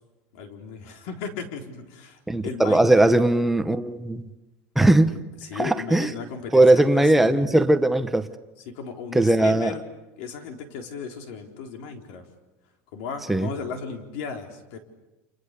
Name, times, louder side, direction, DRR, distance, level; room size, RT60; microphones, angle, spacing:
voice 1, 0.3-3.0 5.4-7.4 8.7-9.8 10.2-12.2 12.9-14.8, left 6 dB, 70° left, 4.1 m, -36 dB
voice 2, 2.3-4.3 4.8-5.2 5.5-6.1 6.5-8.3 9.1-9.7 13.3-13.5, right 1 dB, 5° right, 0.9 m, -19 dB
29.5 x 29.5 x 6.8 m
cardioid pair, 180°, 6 cm